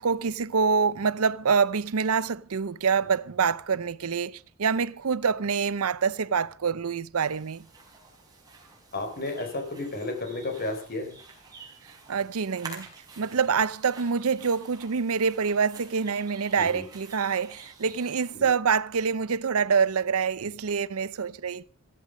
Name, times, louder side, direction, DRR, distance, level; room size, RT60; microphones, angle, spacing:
voice 1, 0.0-7.6 12.1-12.9 13.2-21.7, right 5 dB, 85° right, 0.6 m, -26 dB
sound 1, 7.2-18.3, right 4 dB, 20° right, 4.7 m, -48 dB
voice 2, 8.9-11.2 16.6-16.8 18.3-18.5, left 2 dB, 45° left, 4.1 m, -32 dB
15.0 x 14.5 x 5.2 m
head